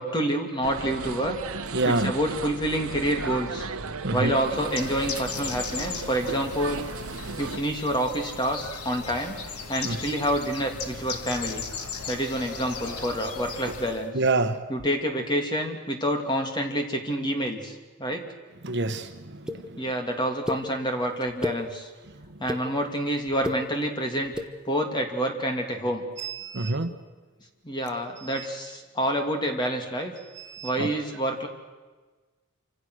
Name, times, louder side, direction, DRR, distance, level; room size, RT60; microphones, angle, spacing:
voice 1, 0.0-1.4 1.8-3.7 4.1-6.9 7.4-9.3 9.7-11.6 12.1-14.1 14.7-18.3 19.8-21.9 22.4-24.3 24.6-26.1 27.6-30.1 30.6-31.5, equal, 20° left, 3 dB, 2.8 m, -28 dB
sound 1, 0.6-7.6, right 4 dB, 70° right, 1.2 m, -36 dB
voice 2, 1.7-2.1 4.0-4.3 9.8-10.0 14.1-14.6 18.6-19.1 26.2-26.9 30.5-30.9, right 2 dB, 50° right, 9 dB, 1.2 m, -26 dB
Bird, 4.4-14.1, left 5 dB, 90° left, 1.9 m, -37 dB
sound 2, 19.5-19.6 20.5-20.6 21.2-21.6 22.2-22.6 23.3-23.6 24.2-24.5, left 1 dB, 5° right, 1.1 m, -30 dB
27.5 x 26.0 x 6.5 m, 1.3 s
head